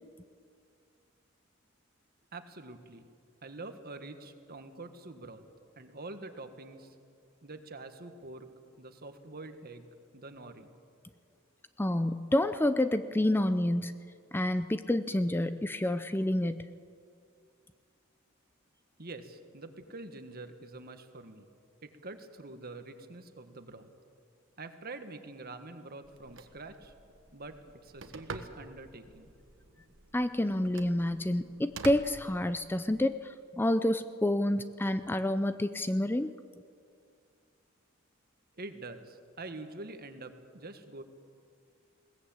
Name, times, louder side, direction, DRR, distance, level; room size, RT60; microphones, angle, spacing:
voice 1, 2.3-3.0 3.4-5.4 5.7-6.9 7.4-8.5 8.8-9.9 10.1-10.7 19.0-21.4 21.8-23.9 24.6-26.9 27.3-29.3 38.6-41.0, right 2 dB, 50° right, 8 dB, 1.6 m, -46 dB
voice 2, 11.8-14.0 14.3-16.7 30.1-36.3, left 1 dB, 10° left, 11 dB, 0.5 m, -29 dB
Telephone, 26.0-33.0, right 3 dB, 70° right, 1.4 m, -48 dB
21.0 x 18.5 x 8.7 m, 2.3 s
head